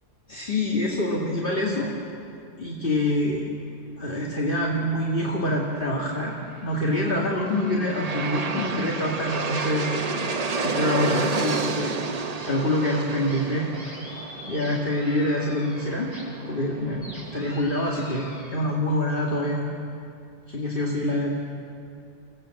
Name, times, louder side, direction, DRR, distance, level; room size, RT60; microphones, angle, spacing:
voice 1, 0.3-1.9 2.6-3.5 4.0-6.3 6.6-9.9 10.6-12.0 12.4-13.7 14.4-16.1 16.5-19.6 20.5-21.3, left 1 dB, 55° left, -3 dB, 2.3 m, -26 dB
Aircraft, 7.0-18.0, right 4 dB, 40° right, 0.9 m, -31 dB
sound 1, 9.8-10.7 11.0-16.2 16.6-18.6, equal, 40° left, 5.3 m, -45 dB
27.5 x 16.5 x 7.7 m, 2.5 s
omnidirectional pair, 1.1 m